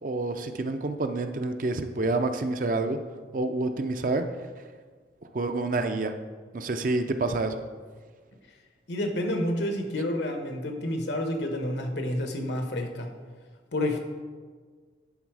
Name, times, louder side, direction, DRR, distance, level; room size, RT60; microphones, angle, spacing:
voice 1, 0.0-3.0 3.3-4.3 5.3-6.1 6.5-7.6, right 2 dB, 45° right, 7 dB, 0.5 m, -28 dB
voice 2, 8.9-13.1 13.7-14.0, left 1 dB, 75° left, 5 dB, 1.1 m, -29 dB
11.0 x 4.1 x 4.8 m, 1.5 s
head